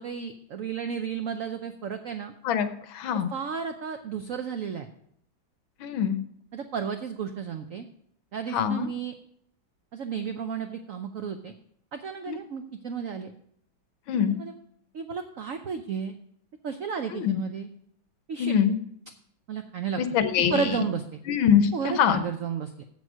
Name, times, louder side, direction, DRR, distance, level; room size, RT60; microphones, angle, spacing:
voice 1, 0.0-2.3 3.3-4.9 6.5-7.8 8.3-9.1 9.9-11.5 11.9-13.3 14.4-14.5 14.9-16.2 16.6-17.7 18.3-18.6 19.5-20.0 20.5-21.2 21.7-22.8, right 6 dB, 85° right, 6 dB, 0.7 m, -33 dB
voice 2, 2.4-3.3 5.8-6.2 8.5-8.9 12.3-12.4 14.1-14.3 17.1-17.4 18.4-18.8 20.0-20.8 21.3-22.2, left 8 dB, 75° left, 10 dB, 1.6 m, -24 dB
7.7 x 7.3 x 6.1 m, 0.68 s
omnidirectional pair, 2.2 m